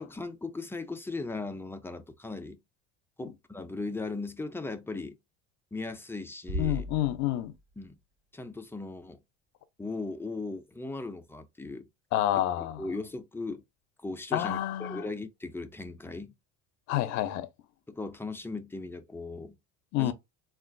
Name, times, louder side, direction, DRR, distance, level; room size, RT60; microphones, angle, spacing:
voice 1, 0.0-2.6 3.2-5.2 5.7-6.8 7.8-8.0 8.3-9.2 9.8-11.9 12.3-13.6 14.0-16.3 17.9-19.6 20.0-20.1, left 3 dB, 10° left, 0.4 m, -38 dB
Bass drum, 6.5-7.9, equal, 75° right, 1.1 m, -37 dB
voice 2, 6.6-7.5 12.1-12.9 14.3-15.1 16.9-17.5 19.9-20.1, left 13 dB, 65° left, 0.5 m, -28 dB
3.6 x 2.4 x 2.5 m
supercardioid pair, 105°, 31 cm